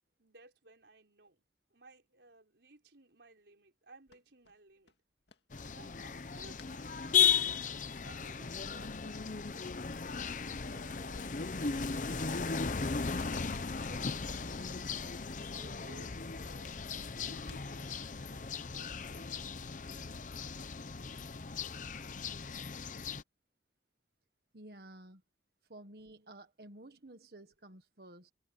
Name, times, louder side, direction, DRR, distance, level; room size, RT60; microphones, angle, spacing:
voice 1, 0.2-1.4 1.7-4.9 5.7-7.4 8.0-9.5 10.6-14.6 15.5-16.9 17.3-20.2, right 2 dB, 90° right, 4.7 m, -59 dB
sound 1, 4.1-6.8 7.0-8.4 8.8-9.0 9.3-9.8 10.2-10.4 10.7-10.8 11.0-11.2 11.5-13.6 13.8-14.6 14.9-15.0 15.4-15.5 15.9-18.1, left 3 dB, 80° left, 2.0 m, -62 dB
sound 2, 5.5-23.2, left 6 dB, 45° left, 0.7 m, -36 dB
voice 2, 24.5-25.2 25.7-28.3, right 1 dB, 60° right, 1.5 m, -52 dB
head